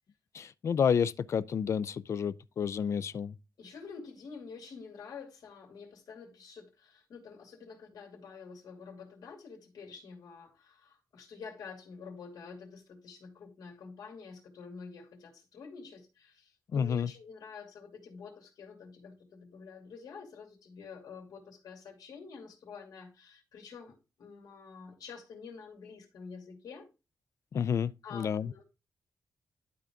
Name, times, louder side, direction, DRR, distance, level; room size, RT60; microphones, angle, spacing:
voice 1, 0.3-3.3 16.7-17.1 27.5-28.5, left 7 dB, 45° left, 0.4 m, -30 dB
voice 2, 3.6-26.9 28.0-28.6, left 5 dB, 75° left, 2.6 m, -48 dB
11.5 x 4.0 x 3.6 m
wide cardioid pair, 165°, 7 cm